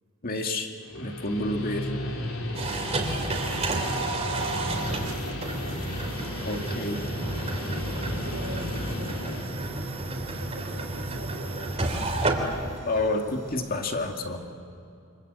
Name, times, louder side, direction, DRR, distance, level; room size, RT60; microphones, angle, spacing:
voice 1, 0.2-0.7 1.0-1.9 6.4-7.0 12.9-14.4, left 2 dB, 45° left, 3 dB, 2.2 m, -29 dB
Guitar, 0.7-9.5, left 1 dB, 75° left, 3.6 m, -35 dB
sound 1, 2.5-14.3, right 2 dB, 30° right, 3.3 m, -31 dB
voice 2, 2.9-4.9 7.9-9.5 10.3-11.7, right 1 dB, 80° right, 0 dB, 6.0 m, -45 dB
28.5 x 25.5 x 8.2 m, 2.7 s
head